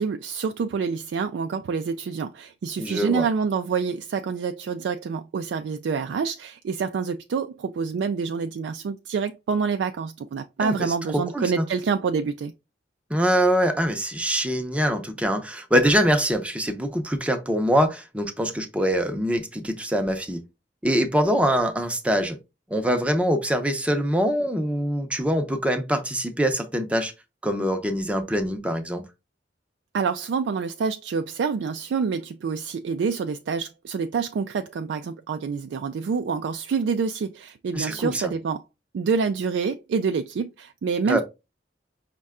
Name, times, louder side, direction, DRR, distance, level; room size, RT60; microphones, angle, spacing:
voice 1, 0.0-12.5 29.9-38.6 38.9-41.2, right 5 dB, 80° right, 0.3 m, -27 dB
voice 2, 2.8-3.2 10.6-11.6 13.1-20.4 20.8-22.4 22.7-27.1 27.4-29.0 37.7-38.3 41.1-41.2, equal, 5° right, 0.5 m, -24 dB
5.3 x 2.2 x 3.5 m
head